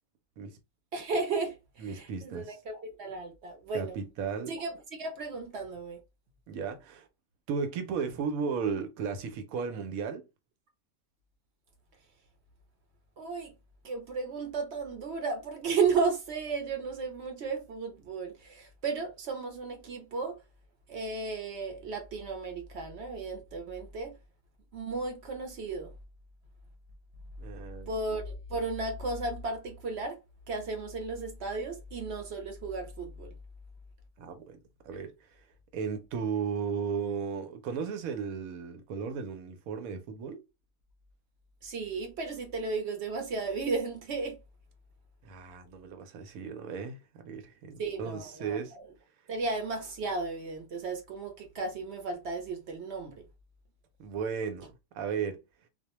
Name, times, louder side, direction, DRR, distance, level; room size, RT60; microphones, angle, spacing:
voice 1, 0.9-4.0 4.5-6.0 13.2-13.5 13.8-20.4 20.9-24.1 24.7-25.9 27.9-30.2 30.5-33.3 41.6-44.4 47.8-48.8 49.3-53.2, right 4 dB, 65° right, 0.8 m, -34 dB
voice 2, 1.8-2.6 3.7-4.5 6.5-7.1 7.5-10.2 27.4-28.0 34.2-34.6 34.8-35.4 35.7-40.4 45.2-48.7 54.0-55.4, right 6 dB, 90° right, 1.0 m, -35 dB
2.4 x 2.1 x 2.8 m
omnidirectional pair, 1.4 m